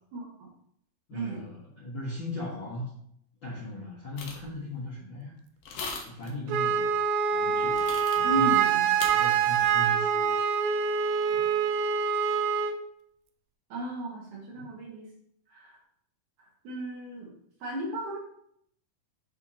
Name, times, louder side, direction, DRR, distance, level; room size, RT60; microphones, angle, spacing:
voice 1, 0.1-0.5 1.1-1.4 8.2-8.9 13.7-15.1 15.5-15.8 16.6-17.3 17.6-18.2, right 1 dB, 65° right, -3 dB, 2.5 m, -34 dB
voice 2, 1.1-2.9 3.4-5.3 6.1-6.9 7.3-8.6 9.0-10.3 11.3-11.4 14.5-14.7, left 1 dB, 50° left, -8 dB, 1.4 m, -38 dB
sound 1, 4.2-4.5 5.6-6.3 7.7-8.4 9.0-9.1, left 4 dB, 70° left, 2.2 m, -38 dB
Wind instrument woodwind instrument, 6.5-12.8, right 7 dB, 85° right, 1.8 m, -25 dB
10.5 x 3.5 x 2.8 m, 0.70 s
omnidirectional pair, 4.2 m